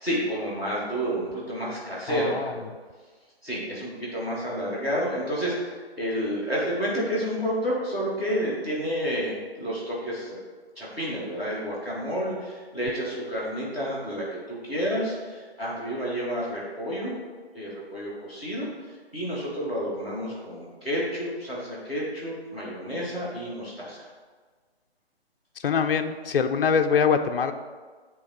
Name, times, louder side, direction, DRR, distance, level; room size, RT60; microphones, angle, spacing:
voice 1, 0.0-2.5 3.4-10.4 10.8-17.1 17.5-18.7 19.1-24.1, equal, 5° right, -13 dB, 0.8 m, -30 dB
voice 2, 2.1-2.5 25.6-27.5, left 6 dB, 60° left, 7 dB, 0.5 m, -23 dB
8.2 x 3.3 x 3.6 m, 1.5 s
hypercardioid pair, 165°, 32 cm